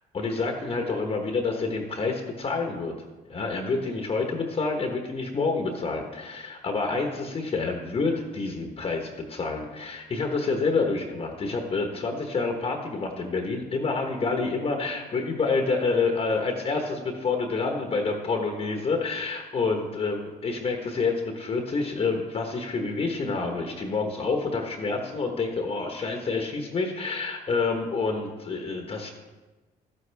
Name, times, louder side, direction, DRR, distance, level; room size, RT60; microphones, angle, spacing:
voice 1, 0.1-2.9 3.3-29.1, left 4 dB, 35° left, 3 dB, 1.2 m, -28 dB
12.5 x 9.8 x 3.5 m, 1.2 s
cardioid pair, 110°, 17 cm